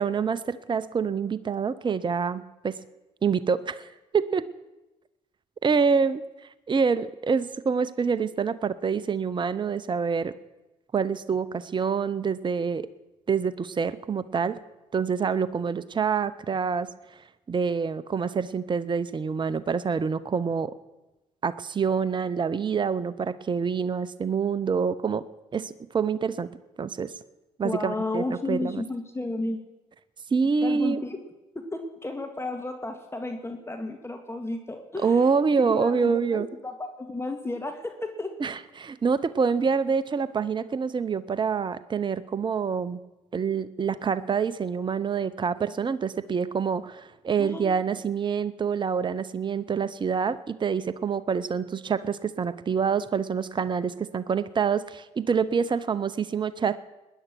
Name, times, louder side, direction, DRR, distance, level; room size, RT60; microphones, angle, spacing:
voice 1, 0.0-2.8 3.2-4.5 5.6-6.2 6.7-10.3 10.9-12.9 13.3-14.6 14.9-16.9 17.5-20.7 21.4-25.3 25.5-26.5 26.8-27.1 27.6-28.8 30.3-31.0 35.0-36.5 38.4-43.0 43.3-56.8, right 6 dB, 30° right, 16 dB, 0.8 m, -26 dB
voice 2, 27.6-29.6 30.6-31.2 31.5-35.3 35.6-38.3 47.4-47.7, left 2 dB, 15° left, 5 dB, 1.9 m, -33 dB
19.0 x 10.0 x 6.2 m, 1.0 s
hypercardioid pair, 55°, 16 cm